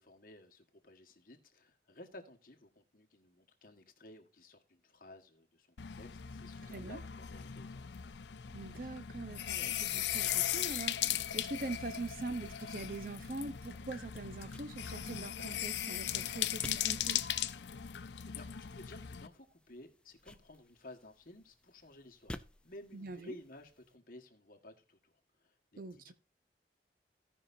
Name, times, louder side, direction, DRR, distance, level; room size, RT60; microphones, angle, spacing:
voice 1, 0.0-8.0 17.9-26.0, left 1 dB, 50° left, 1.5 m, -55 dB
sound 1, 5.8-19.3, left 11 dB, 80° left, 0.6 m, -38 dB
voice 2, 6.7-7.0 8.5-17.2 22.9-23.4 25.8-26.1, right 3 dB, 50° right, 0.7 m, -43 dB
sound 2, 13.0-24.0, left 1 dB, 5° left, 0.4 m, -55 dB
17.0 x 5.6 x 2.6 m
head